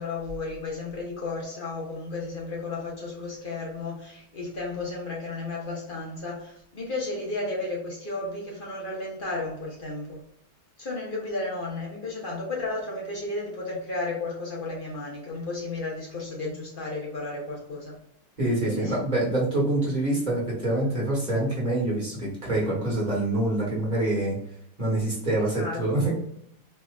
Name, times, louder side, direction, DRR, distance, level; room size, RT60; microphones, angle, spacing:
voice 1, 0.0-10.2 10.8-18.0 18.7-19.0 25.5-26.1, left 2 dB, 35° left, -3 dB, 1.1 m, -33 dB
voice 2, 18.4-24.4 24.8-26.1, right 1 dB, 25° right, -5 dB, 1.5 m, -26 dB
4.4 x 2.8 x 2.4 m, 0.73 s
omnidirectional pair, 1.9 m